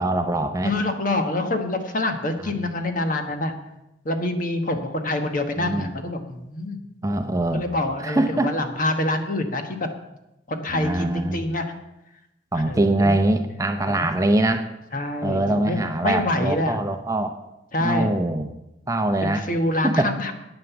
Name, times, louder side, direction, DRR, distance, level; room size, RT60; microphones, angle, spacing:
voice 1, 0.0-0.7 2.5-2.7 5.6-5.9 7.0-7.6 8.0-8.5 10.7-11.4 12.5-14.7 15.2-17.4 17.8-18.5 18.9-19.5 19.8-20.1, right 1 dB, 15° right, 6 dB, 0.7 m, -23 dB
voice 2, 0.6-3.5 4.0-6.8 7.5-9.9 10.5-11.7 12.7-13.2 13.9-14.1 14.9-16.8 17.7-18.1 19.2-20.3, left 1 dB, 45° left, 6 dB, 1.3 m, -26 dB
9.5 x 9.2 x 7.1 m, 0.90 s
head